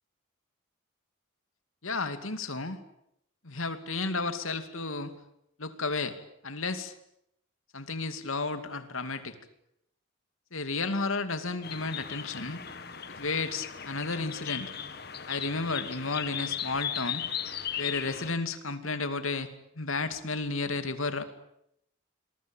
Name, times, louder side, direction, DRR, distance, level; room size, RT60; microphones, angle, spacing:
voice 1, 1.8-2.8 3.4-5.1 5.6-6.2 6.4-6.9 7.7-9.4 10.5-12.6 13.1-14.7 15.3-17.2 17.8-19.5 19.8-21.2, left 3 dB, 85° left, 9 dB, 2.6 m, -32 dB
sound 1, 11.6-18.3, left 9 dB, 50° left, 1.9 m, -37 dB
27.5 x 22.5 x 9.2 m, 0.79 s
head